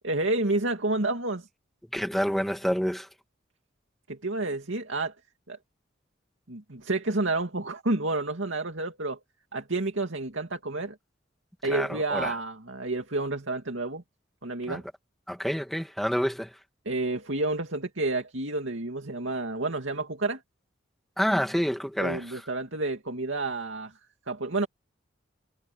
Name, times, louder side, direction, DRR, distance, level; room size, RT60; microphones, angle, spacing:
voice 1, 0.0-1.5 4.1-5.1 5.5-5.6 6.5-9.2 9.5-11.0 11.6-14.0 14.4-14.8 16.9-20.4 22.0-23.9 24.3-24.7, right 2 dB, 80° right, 2.4 m, -30 dB
voice 2, 1.9-3.1 11.6-12.3 14.7-14.8 15.3-16.5 21.2-22.4, equal, ahead, 2.1 m, -28 dB
head